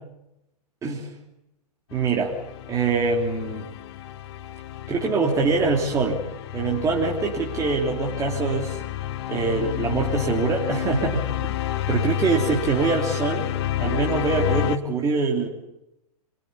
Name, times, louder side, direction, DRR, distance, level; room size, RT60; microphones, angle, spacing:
sound 1, 1.9-14.8, left 12 dB, 40° left, 1.4 m, -30 dB
voice 1, 1.9-2.4 2.7-3.7 4.9-6.2 6.5-8.8 9.3-11.2 11.9-13.5 13.8-15.5, right 4 dB, 15° right, -2 dB, 3.1 m, -24 dB
27.0 x 22.5 x 8.5 m, 0.89 s
figure-of-eight pair, 120°, 20 cm